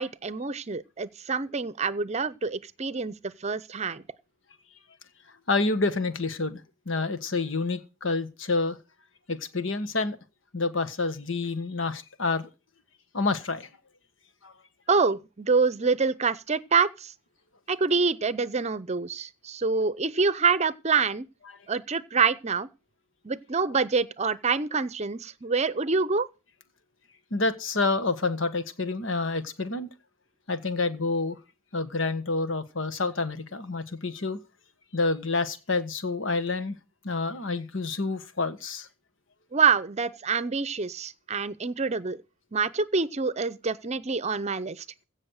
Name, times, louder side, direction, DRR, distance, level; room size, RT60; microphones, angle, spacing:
voice 1, 0.0-4.0 14.9-17.1 17.7-21.3 21.7-22.7 23.2-26.3 39.5-42.2 42.5-44.8, right 5 dB, 35° right, 0.7 m, -26 dB
voice 2, 5.5-8.8 9.3-10.2 10.5-12.5 13.1-13.7 14.4-14.5 27.3-29.9 30.5-31.4 31.7-34.4 34.9-36.7 37.0-38.9, left 3 dB, 80° left, 1.5 m, -28 dB
16.0 x 6.4 x 6.5 m
head